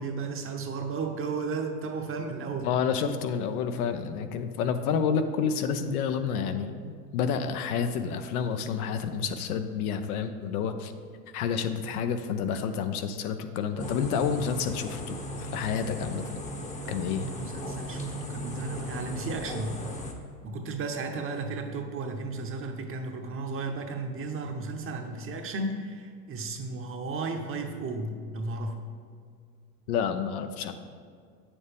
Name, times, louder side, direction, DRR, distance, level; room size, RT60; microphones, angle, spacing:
voice 1, 0.0-2.7 16.9-19.8 20.4-28.8, right 3 dB, 30° right, 4 dB, 0.9 m, -34 dB
voice 2, 2.6-10.9 11.3-16.4 16.9-17.3 29.9-30.7, left 6 dB, 70° left, 8 dB, 0.8 m, -29 dB
sound 1, 13.8-20.1, equal, 15° left, 0.9 m, -37 dB
8.4 x 7.1 x 3.5 m, 2.1 s
hypercardioid pair, 100°, 46 cm